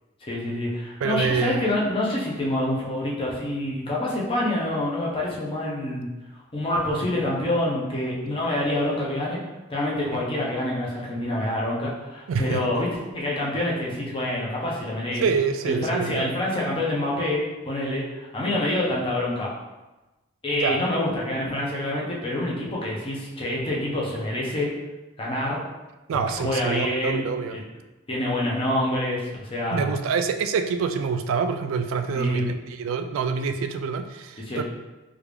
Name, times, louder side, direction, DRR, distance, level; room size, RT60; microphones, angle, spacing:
voice 1, 0.3-6.1 6.5-9.4 9.7-12.9 13.1-15.2 15.7-19.5 20.4-24.7 25.2-25.6 26.1-27.3 27.5-27.6 28.1-29.9 32.1-32.4 34.5-34.6, left 1 dB, 25° left, -4 dB, 0.6 m, -26 dB
voice 2, 1.0-1.6 10.1-10.3 12.3-12.6 15.2-16.3 20.5-20.8 26.1-27.6 29.7-34.6, right 5 dB, 75° right, 8 dB, 0.3 m, -26 dB
3.4 x 2.4 x 3.3 m, 1.1 s
head